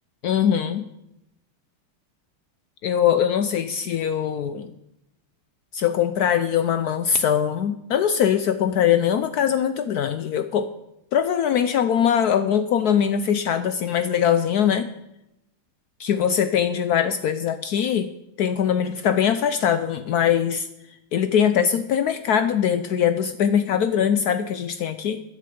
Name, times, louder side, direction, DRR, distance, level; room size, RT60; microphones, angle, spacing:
voice 1, 0.2-0.9 2.8-4.7 5.7-10.7 11.1-14.9 16.0-18.1 18.4-20.7 21.1-25.2, left 8 dB, 90° left, 11 dB, 0.8 m, -22 dB
14.0 x 10.0 x 5.2 m, 0.84 s
omnidirectional pair, 2.4 m